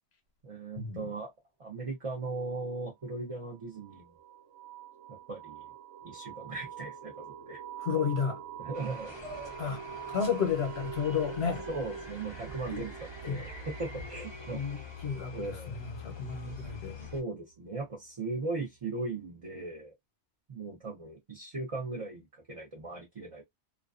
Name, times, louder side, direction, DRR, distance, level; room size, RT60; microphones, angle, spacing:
voice 1, 0.4-1.3 1.6-4.1 5.1-5.7 6.0-7.6 8.6-9.2 9.9-10.0 11.4-12.9 13.2-14.8 15.3-15.7 16.4-16.5 17.1-19.9 20.5-23.4, right 3 dB, 35° right, 0.7 m, -38 dB
sound 1, 3.4-17.8, right 8 dB, 70° right, 0.8 m, -46 dB
voice 2, 7.8-8.4 9.6-9.8 10.1-11.6 12.7-12.9 13.3-13.5 14.5-17.0, left 6 dB, 65° left, 1.0 m, -32 dB
sound 2, 8.7-17.2, left 3 dB, 30° left, 0.5 m, -45 dB
2.4 x 2.2 x 2.3 m
omnidirectional pair, 1.2 m